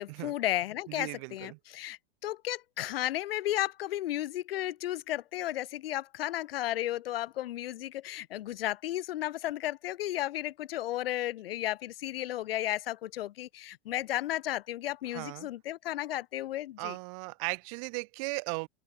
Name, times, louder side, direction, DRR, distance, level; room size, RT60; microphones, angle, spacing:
voice 1, 0.0-17.0, left 14 dB, 60° left, 3.8 m, -34 dB
voice 2, 0.9-1.6 15.1-15.5 16.8-18.7, right 36 dB, 30° right, 1.2 m, -37 dB
open air
supercardioid pair, 175°, 34 cm